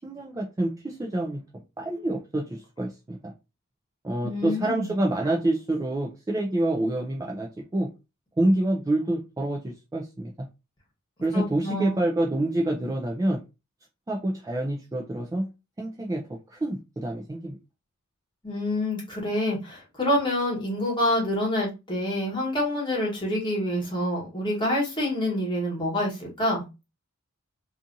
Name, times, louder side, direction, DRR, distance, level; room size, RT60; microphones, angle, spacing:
voice 1, 0.0-1.4 1.8-3.3 4.0-7.9 8.4-10.3 11.2-13.4 14.1-15.5 15.8-17.6, right 1 dB, 15° right, 0.3 m, -27 dB
voice 2, 4.2-4.9 11.3-12.0 18.4-26.6, left 1 dB, 20° left, 1.2 m, -27 dB
2.6 x 2.4 x 2.5 m
head